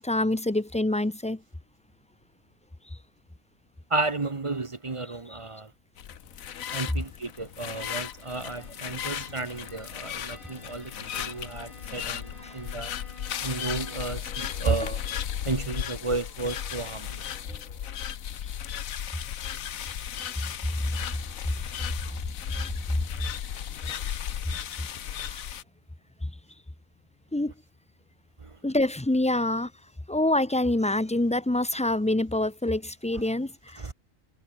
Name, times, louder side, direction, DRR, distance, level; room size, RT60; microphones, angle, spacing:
voice 1, 0.0-1.4 5.3-5.4 12.4-12.5 14.8-14.9 25.3-25.4 27.3-27.5 28.6-29.7 30.1-33.8, left 1 dB, 10° left, 0.3 m, -26 dB
voice 2, 3.9-5.7 6.7-12.9 13.4-15.0 15.4-17.2 28.4-28.5 33.8-33.9, right 3 dB, 30° right, 0.8 m, -32 dB
sound 1, 6.0-25.6, left 9 dB, 85° left, 1.4 m, -36 dB
Bowed string instrument, 7.8-14.2, left 1 dB, 40° left, 5.0 m, -51 dB
sound 2, 13.1-18.0, right 2 dB, 75° right, 5.7 m, -55 dB
omnidirectional pair, 1.4 m